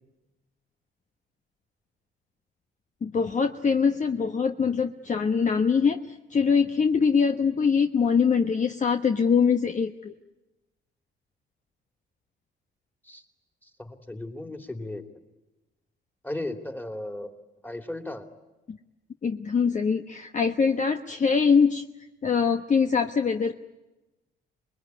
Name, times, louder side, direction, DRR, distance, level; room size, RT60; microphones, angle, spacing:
voice 1, 3.0-10.1 18.7-18.8 19.2-21.8 22.2-23.5, left 6 dB, 40° left, 6 dB, 1.2 m, -23 dB
voice 2, 13.6-15.0 16.2-17.3 17.6-18.3, left 1 dB, 10° left, 5 dB, 3.0 m, -36 dB
27.0 x 21.0 x 9.7 m, 1.0 s
cardioid pair, 90°, 20 cm